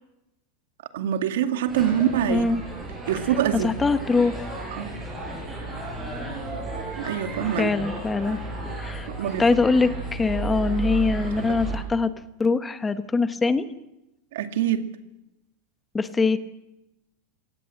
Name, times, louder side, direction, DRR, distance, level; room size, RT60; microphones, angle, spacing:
voice 1, 0.9-2.4 3.1-3.7 4.7-4.9 7.0-7.7 9.1-9.5 14.3-14.9, right 10 dB, 80° right, 2.2 m, -25 dB
sound 1, 1.7-11.8, right 3 dB, 10° right, 7.2 m, -33 dB
voice 2, 2.3-2.6 3.6-4.5 7.6-8.4 8.8-9.1 9.4-12.1 12.4-13.7 15.9-16.4, left 4 dB, 10° left, 1.1 m, -23 dB
24.0 x 18.0 x 7.8 m
supercardioid pair, 165°, 0 cm